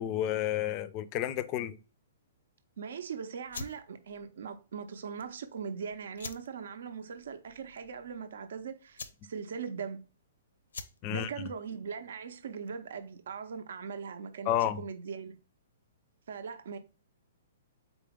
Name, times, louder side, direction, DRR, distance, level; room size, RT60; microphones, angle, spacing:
voice 1, 0.0-1.8 11.0-11.3 14.5-14.8, left 11 dB, 35° left, 0.4 m, -30 dB
voice 2, 2.8-10.0 11.1-15.4 16.3-16.8, right 6 dB, 70° right, 0.6 m, -40 dB
sound 1, 3.4-13.0, left 4 dB, 90° left, 0.6 m, -48 dB
4.0 x 3.8 x 3.5 m
hypercardioid pair, 145°, 0 cm